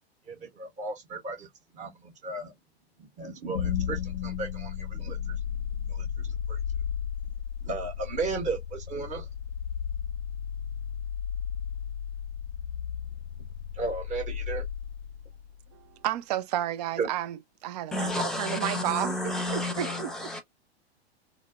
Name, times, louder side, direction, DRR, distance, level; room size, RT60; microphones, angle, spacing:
voice 1, 0.3-1.5 1.7-2.5 3.0-5.4 5.9-6.6 7.6-9.3 13.7-14.6 17.0-17.1, right 3 dB, 20° right, 1.2 m, -35 dB
sound 1, 3.5-15.7, left 8 dB, 60° left, 0.5 m, -34 dB
voice 2, 15.7-20.1, right 12 dB, 40° right, 0.4 m, -32 dB
voice 3, 17.9-20.4, left 2 dB, ahead, 1.0 m, -31 dB
3.8 x 2.0 x 2.4 m
figure-of-eight pair, 95°, 33 cm